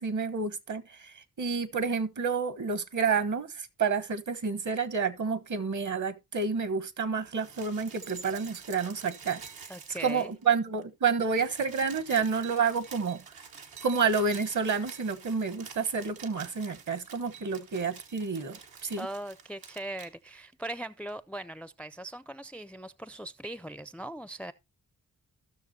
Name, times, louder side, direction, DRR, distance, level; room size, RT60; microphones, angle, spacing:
voice 1, 0.0-9.4 10.0-13.2 13.8-19.1, right 5 dB, 60° right, 1.2 m, -29 dB
sound 1, 7.2-10.5 10.8-10.9 11.1-20.1 21.1-21.2, right 6 dB, 85° right, 1.3 m, -48 dB
voice 2, 9.7-10.3 19.0-24.5, right 1 dB, 5° left, 0.4 m, -40 dB
15.5 x 6.4 x 2.7 m
cardioid pair, 70°, 34 cm